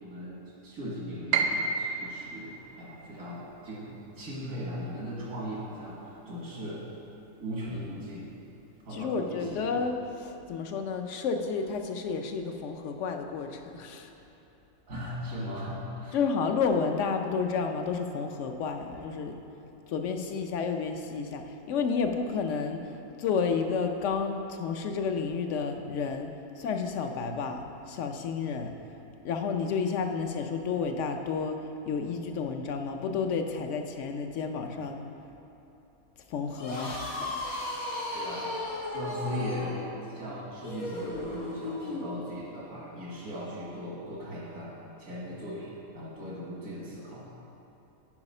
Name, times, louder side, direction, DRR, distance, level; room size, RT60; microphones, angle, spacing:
voice 1, 0.0-2.5 2.8-6.8 7.4-8.3 8.8-9.6 14.9-16.2 38.1-38.5 38.9-39.7 40.1-44.7 45.0-47.3, equal, 85° right, -6 dB, 2.0 m, -38 dB
Piano, 1.3-7.3 7.6-8.7 9.1-9.2 10.0-10.3, right 4 dB, 70° right, 0.9 m, -35 dB
voice 2, 8.9-14.1 16.1-19.4 19.9-22.9 23.2-26.3 26.6-28.7 29.2-31.6 31.9-35.0 36.3-37.3, left 5 dB, 65° left, 5 dB, 0.9 m, -31 dB
sound 1, 36.5-42.1, left 1 dB, 90° left, 1.7 m, -35 dB
9.7 x 4.9 x 5.4 m, 2.9 s
omnidirectional pair, 1.4 m